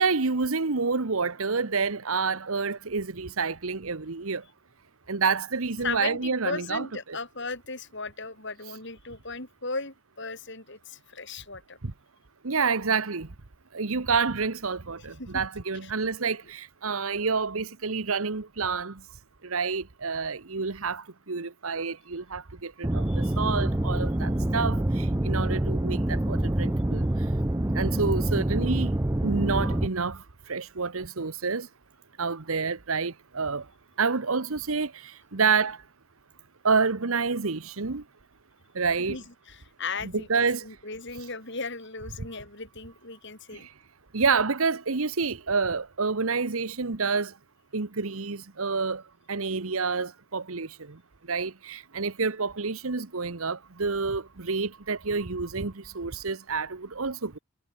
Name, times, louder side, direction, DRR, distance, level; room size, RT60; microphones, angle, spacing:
voice 1, 0.0-4.4 5.1-6.9 11.8-11.9 12.4-13.3 13.7-19.0 19.4-27.1 27.7-28.9 29.2-31.7 32.2-33.6 34.0-35.8 36.6-38.0 38.7-39.2 40.1-40.7 43.5-43.7 44.1-47.3 47.7-49.0 49.3-51.0 51.3-57.4, right 4 dB, 70° right, 1.1 m, -28 dB
voice 2, 5.8-11.8 15.2-15.4 15.8-15.9 22.9-23.4 39.1-43.7, left 4 dB, 55° left, 7.5 m, -37 dB
sound 1, 22.8-29.9, right 1 dB, 15° right, 0.5 m, -26 dB
head